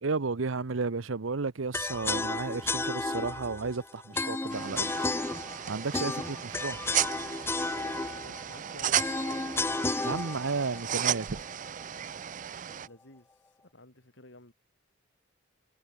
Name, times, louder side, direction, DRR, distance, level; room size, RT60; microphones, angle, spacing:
voice 1, 0.0-4.9 5.7-6.8 10.0-11.4, right 4 dB, 90° right, 0.9 m, -33 dB
sound 1, 1.7-11.8, left 3 dB, 10° left, 0.4 m, -33 dB
sound 2, 4.5-12.9, right 10 dB, 40° right, 0.5 m, -34 dB
voice 2, 8.1-9.1 12.7-13.3 13.7-14.5, left 2 dB, 65° left, 5.0 m, -52 dB
head